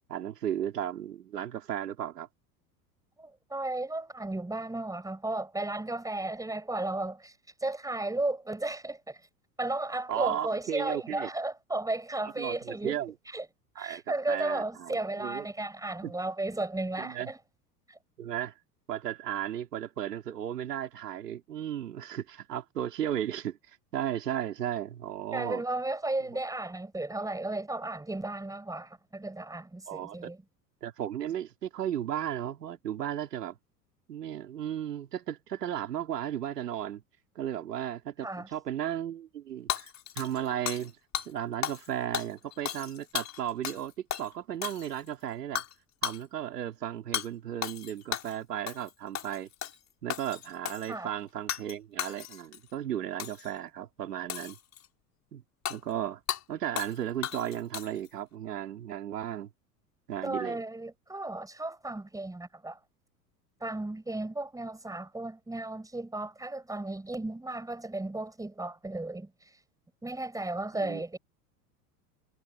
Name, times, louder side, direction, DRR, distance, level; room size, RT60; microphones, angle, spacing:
voice 1, 0.1-2.3 10.1-11.3 12.2-13.1 13.8-14.0 14.3-15.4 16.0-16.1 17.0-17.3 18.2-18.5 18.9-25.6 29.9-30.3 30.8-33.6 34.1-37.0 37.4-40.9 41.3-43.9 44.2-45.6 46.0-49.5 50.0-54.6 55.3-55.4 55.7-56.2 56.5-59.5 60.1-60.6 70.8-71.0, right 10 dB, 75° right, 4.3 m, -35 dB
voice 2, 3.2-7.3 7.6-9.2 9.6-13.0 13.3-13.5 13.8-17.4 17.9-18.0 25.3-30.4 38.2-38.5 50.9-51.1 60.2-62.8 63.6-69.3 70.0-71.2, right 2 dB, 5° right, 7.2 m, -34 dB
Hammer / Shatter, 39.7-40.9 41.1-41.3 41.6-41.9 42.1-43.8 44.1-44.3 44.6-45.1 45.6-45.7 46.0-46.2 47.1-47.3 47.6-48.4 48.7-48.9 49.1-49.8 50.1-50.9 51.5-51.7 52.0-52.6 53.2-53.5 54.3-54.9 55.7-55.8 56.3-56.4 56.8-57.0 57.2-58.1, left 10 dB, 35° left, 5.2 m, -35 dB
hypercardioid pair, 85°, 47 cm